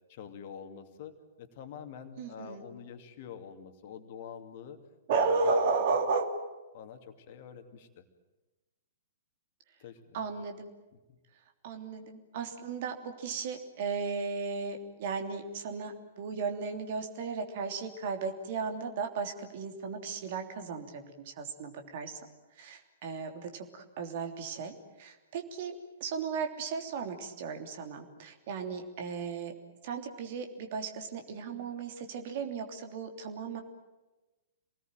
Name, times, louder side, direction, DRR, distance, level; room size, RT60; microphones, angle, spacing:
voice 1, 0.1-4.8 5.1-5.6 6.7-8.0 9.8-10.2 11.1-11.2, left 7 dB, 40° left, 7 dB, 2.5 m, -46 dB
voice 2, 2.2-2.6 5.1-6.3 10.1-10.7 11.6-22.2 22.6-25.7 26.0-29.5 29.8-33.6, right 4 dB, 45° right, 5 dB, 3.2 m, -35 dB
27.5 x 20.0 x 9.1 m, 1.1 s
figure-of-eight pair, 110°, 0 cm